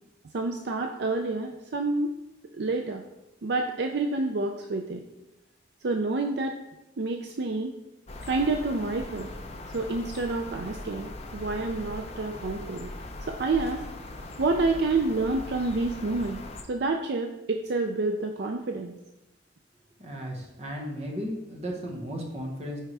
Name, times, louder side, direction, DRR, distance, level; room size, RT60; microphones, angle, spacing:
voice 1, 0.3-2.1 2.5-3.0 3.4-5.0 5.8-6.6 7.0-7.7 8.2-9.3 9.7-12.9 13.3-13.8 14.4-16.4 16.7-18.9, right 3 dB, 60° right, 4 dB, 0.5 m, -28 dB
sound 1, 8.1-16.6, left 2 dB, 35° left, 0.7 m, -40 dB
voice 2, 20.0-22.8, equal, 35° right, 0 dB, 1.3 m, -35 dB
9.1 x 4.7 x 3.4 m, 0.93 s
head